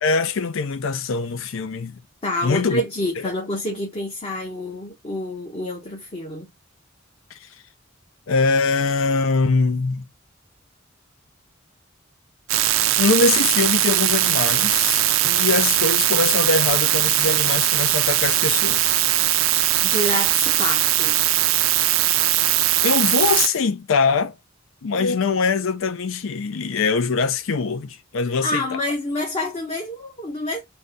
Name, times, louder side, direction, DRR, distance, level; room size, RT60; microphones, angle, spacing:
voice 1, 0.0-2.0 2.4-2.8 3.2-3.3 8.3-10.0 13.0-19.0 22.8-24.3 24.8-28.6, left 4 dB, 75° left, 0.5 m, -22 dB
voice 2, 2.2-6.5 19.8-21.2 28.4-30.6, left 1 dB, 30° left, 0.8 m, -28 dB
sound 1, 12.5-23.5, right 13 dB, 80° right, 0.4 m, -20 dB
3.9 x 2.3 x 3.9 m
head